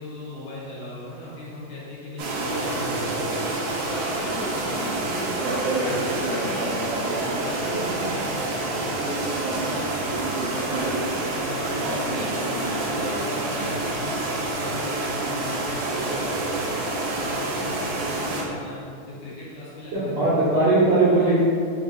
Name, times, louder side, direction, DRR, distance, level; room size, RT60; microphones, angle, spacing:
voice 1, 0.0-3.6 3.8-5.6 5.9-12.5 12.8-16.7 17.1-20.4 21.2-21.3, left 1 dB, 70° left, -8 dB, 2.0 m, -38 dB
sound 1, 1.2-1.3 2.9-3.8 4.8-5.3 5.6-6.6, left 2 dB, 85° left, 1.5 m, -37 dB
sound 2, 2.2-18.4, right 2 dB, 85° right, 1.7 m, -27 dB
voice 2, 19.9-21.4, right 2 dB, 70° right, -11 dB, 1.6 m, -19 dB
5.4 x 2.4 x 3.6 m, 2.3 s
omnidirectional pair, 4.1 m